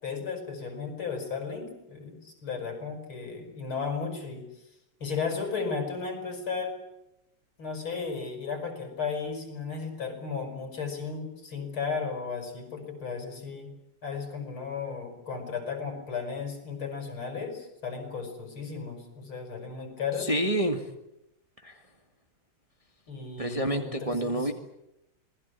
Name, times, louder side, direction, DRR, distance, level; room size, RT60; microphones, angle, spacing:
voice 1, 0.0-4.5 5.0-6.8 7.6-13.7 14.0-20.3 23.1-24.5, left 5 dB, 70° left, 5 dB, 6.6 m, -35 dB
voice 2, 20.2-20.8 21.6-21.8 23.4-24.5, right 1 dB, 15° right, 5 dB, 1.8 m, -28 dB
27.0 x 20.5 x 8.4 m, 0.86 s
omnidirectional pair, 2.3 m